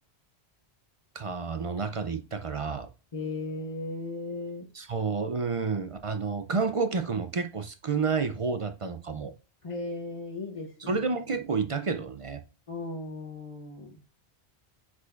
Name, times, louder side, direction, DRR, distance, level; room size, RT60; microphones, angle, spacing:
voice 1, 1.1-2.9 4.7-9.3 10.8-12.4, right 4 dB, 45° right, 0.4 m, -30 dB
voice 2, 3.1-4.7 9.6-11.1 12.7-14.0, left 2 dB, 30° left, 0.9 m, -36 dB
8.1 x 4.9 x 2.5 m
omnidirectional pair, 1.1 m